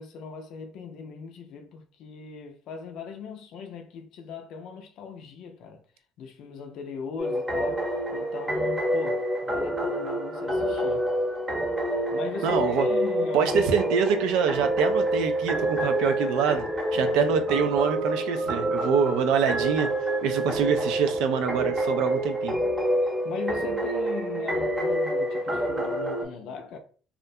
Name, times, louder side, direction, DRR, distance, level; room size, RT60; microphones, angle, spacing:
voice 1, 0.0-5.8 6.2-11.1 12.1-13.6 17.0-17.2 17.5-17.6 23.0-26.8, left 4 dB, 70° left, 0.4 m, -39 dB
sound 1, 7.2-26.3, right 1 dB, 15° right, 0.8 m, -27 dB
voice 2, 12.4-12.9 13.3-16.6 16.9-19.9 20.2-22.6, right 6 dB, 80° right, 0.4 m, -25 dB
2.4 x 2.1 x 2.6 m
supercardioid pair, 80°, 0 cm